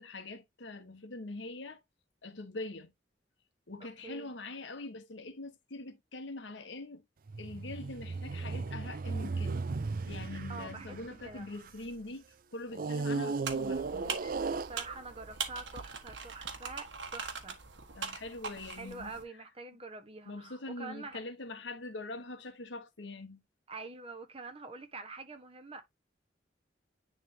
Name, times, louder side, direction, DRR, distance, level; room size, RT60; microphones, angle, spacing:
voice 1, 0.0-1.8 2.2-2.9 3.7-7.0 7.4-9.6 10.1-12.2 12.5-14.4 17.9-19.1 20.3-23.4, left 2 dB, 80° left, 1.3 m, -43 dB
voice 2, 3.8-4.3 10.5-11.0 11.2-11.5 14.5-17.6 18.7-21.2 23.7-25.8, right 3 dB, 30° right, 1.3 m, -46 dB
sound 1, 7.3-12.0 12.7-15.2 15.9-16.1, right 4 dB, 50° right, 0.5 m, -36 dB
sound 2, 13.4-19.2, right 5 dB, 80° right, 1.5 m, -41 dB
10.0 x 3.4 x 2.8 m
head